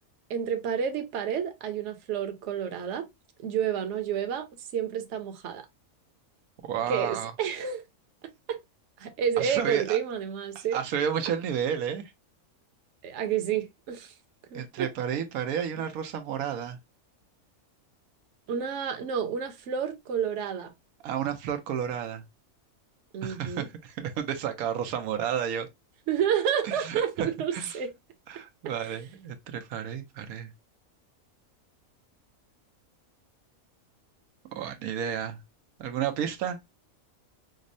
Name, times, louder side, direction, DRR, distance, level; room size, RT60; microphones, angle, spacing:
voice 1, 0.3-3.1 3.4-4.5 4.7-5.6 6.9-7.8 8.5-8.6 9.0-10.8 13.0-14.1 14.5-14.9 18.5-20.7 23.1-23.6 26.1-27.9 28.9-29.0, right 8 dB, 60° right, 1.0 m, -30 dB
voice 2, 6.6-7.3 9.4-10.0 10.5-12.0 14.5-16.8 21.0-22.2 23.2-25.7 26.6-27.8 28.3-30.5 34.5-35.4 35.8-36.6, right 8 dB, 90° right, 1.1 m, -31 dB
5.2 x 2.0 x 2.5 m
omnidirectional pair, 1.5 m